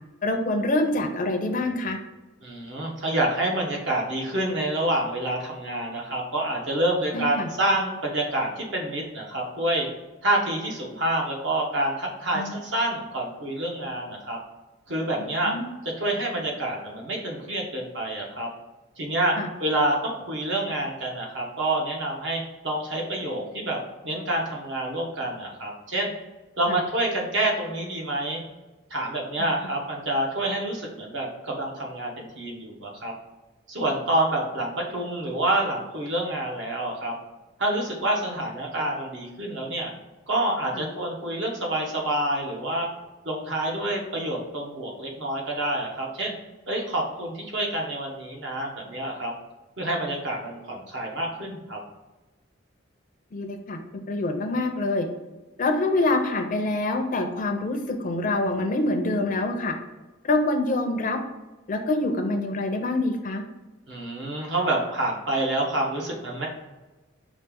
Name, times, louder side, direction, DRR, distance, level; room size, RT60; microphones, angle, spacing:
voice 1, 0.2-2.0 7.1-7.5 12.3-12.6 15.5-15.6 19.4-19.5 26.7-26.8 40.7-40.9 53.3-53.8 54.1-55.1 55.6-59.7 60.2-61.2 61.7-63.4, left 2 dB, 40° left, 5 dB, 0.5 m, -25 dB
voice 2, 2.4-9.9 10.2-14.4 14.9-15.5 16.0-18.5 19.0-23.8 24.0-26.1 26.6-28.4 28.9-33.1 33.7-37.1 37.6-39.9 40.3-42.9 43.2-46.3 46.7-49.3 49.8-51.8 63.9-66.5, right 1 dB, 65° right, -1 dB, 1.0 m, -27 dB
5.3 x 2.4 x 3.5 m, 1.1 s
head